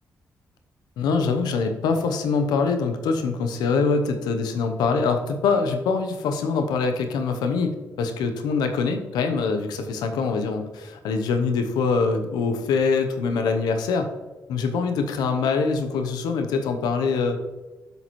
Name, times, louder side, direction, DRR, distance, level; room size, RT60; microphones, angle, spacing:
voice 1, 1.0-14.1 14.5-17.4, left 4 dB, 85° left, 7 dB, 0.8 m, -24 dB
8.0 x 6.9 x 3.1 m, 1.2 s
supercardioid pair, 55°, 7 cm